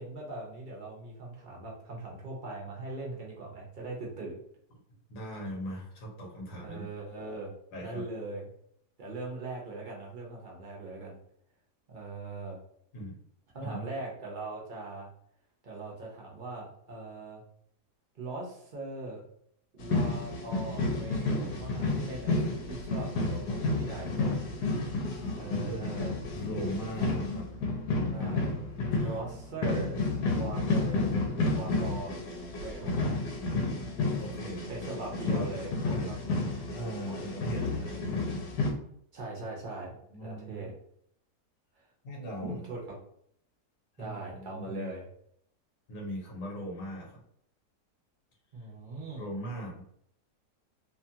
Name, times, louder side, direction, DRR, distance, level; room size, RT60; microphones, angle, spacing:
voice 1, 0.0-4.4 6.6-7.5 7.8-8.5 9.0-11.2 11.9-12.6 13.5-15.1 15.6-17.4 18.1-19.3 19.7-24.4 25.3-26.1 28.1-28.5 29.0-30.0 30.3-31.1 31.5-32.3 32.6-33.3 34.7-36.2 37.1-37.2 37.6-38.0 39.1-40.7 42.4-42.8 44.0-45.0 48.5-49.3, right 2 dB, 50° right, -3 dB, 0.6 m, -40 dB
voice 2, 5.1-6.9 7.7-8.0 12.9-13.2 13.6-13.9 25.1-25.3 25.6-25.8 26.3-27.5 28.9-29.2 33.6-33.7 34.2-34.7 35.9-36.2 36.7-37.9 40.1-40.7 42.0-42.6 44.0-44.9 45.9-47.2 49.2-49.8, equal, 65° left, -2 dB, 1.3 m, -39 dB
sound 1, 19.8-38.7, left 2 dB, 85° left, 1.2 m, -31 dB
2.9 x 2.3 x 2.7 m, 0.68 s
omnidirectional pair, 1.7 m